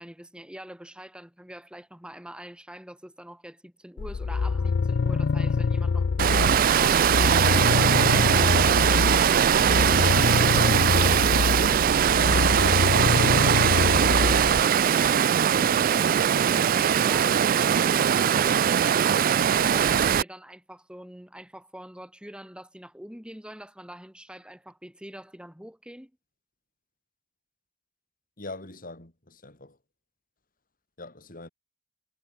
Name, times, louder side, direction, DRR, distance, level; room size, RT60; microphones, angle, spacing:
voice 1, 0.0-8.4 16.5-26.1, right 1 dB, 5° right, 3.2 m, -44 dB
sound 1, 4.0-14.6, left 4 dB, 65° left, 0.4 m, -26 dB
Water, 6.2-20.2, right 8 dB, 50° right, 0.4 m, -21 dB
voice 2, 12.1-14.3 14.8-16.2 28.4-29.8 31.0-31.5, left 2 dB, 50° left, 4.3 m, -43 dB
head